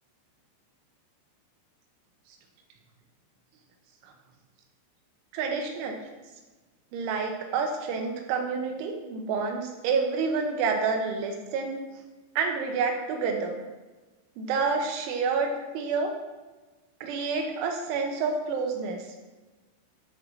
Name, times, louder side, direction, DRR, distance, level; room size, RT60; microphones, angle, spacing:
voice 1, 5.3-6.0 6.9-11.8 12.4-13.6 14.4-16.1 17.0-19.1, right 4 dB, 75° right, 2 dB, 3.5 m, -28 dB
11.0 x 6.3 x 4.2 m, 1.2 s
omnidirectional pair, 5.6 m